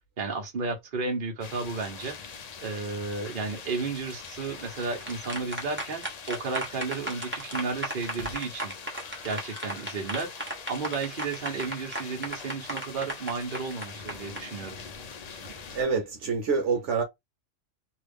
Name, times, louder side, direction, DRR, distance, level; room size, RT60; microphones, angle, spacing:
voice 1, 0.2-8.7 9.2-14.8, right 4 dB, 45° right, 1.1 m, -33 dB
sound 1, 1.4-15.8, left 6 dB, 55° left, 0.4 m, -43 dB
sound 2, 4.6-14.4, right 1 dB, 10° right, 1.0 m, -35 dB
voice 2, 15.4-17.0, right 5 dB, 70° right, 1.1 m, -27 dB
3.0 x 2.4 x 3.4 m
omnidirectional pair, 1.3 m